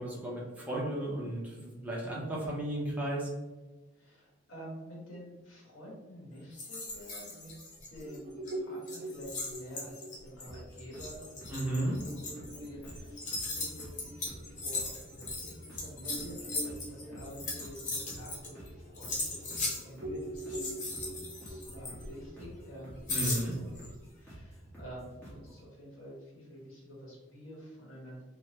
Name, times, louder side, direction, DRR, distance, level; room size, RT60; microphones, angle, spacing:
voice 1, 0.0-3.3 11.5-11.9 23.1-23.5, right 1 dB, 10° right, -5 dB, 0.6 m, -34 dB
voice 2, 4.0-7.5 7.9-11.8 12.1-12.2 12.5-21.1 21.5-23.7 24.2-28.2, equal, 85° left, -4 dB, 1.2 m, -49 dB
sound 1, 6.6-8.2 8.4-8.5 8.8-18.7 18.9-19.8 20.3-22.3 23.1-23.9, left 2 dB, 40° left, 0.7 m, -38 dB
sound 2, 8.0-15.1 15.5-15.6 16.0-19.6 20.0-23.1, right 1 dB, 45° right, 0.7 m, -44 dB
sound 3, 10.5-25.6, equal, 10° left, 1.0 m, -50 dB
3.0 x 2.1 x 3.0 m, 1.2 s
head